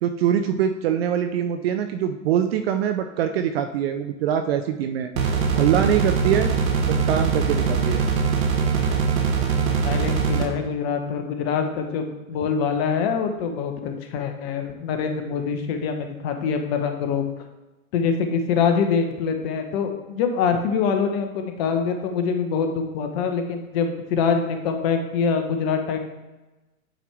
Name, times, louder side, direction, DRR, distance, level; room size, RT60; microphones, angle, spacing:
voice 1, 0.0-5.1 5.6-6.5 6.9-8.0, right 9 dB, 45° right, 7 dB, 0.5 m, -23 dB
sound 1, 5.2-10.4, right 5 dB, 65° right, 1.4 m, -22 dB
voice 2, 9.8-17.3 17.9-26.0, left 6 dB, 45° left, 5 dB, 1.1 m, -24 dB
8.7 x 4.6 x 3.4 m, 1.1 s
hypercardioid pair, 110°, 43 cm